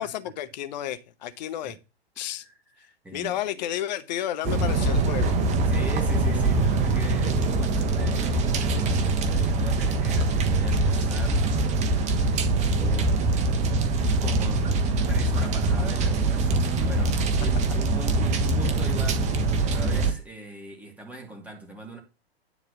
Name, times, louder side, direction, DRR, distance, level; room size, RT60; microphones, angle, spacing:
voice 1, 0.0-1.8 2.2-2.4 3.1-5.3, left 12 dB, 45° left, 1.0 m, -31 dB
voice 2, 2.2-3.4 5.7-13.2 14.2-14.7 15.1-22.0, right 1 dB, 5° right, 2.7 m, -41 dB
sound 1, 4.4-20.1, right 2 dB, 20° right, 1.2 m, -23 dB
10.0 x 4.3 x 7.0 m
figure-of-eight pair, 110°, 32 cm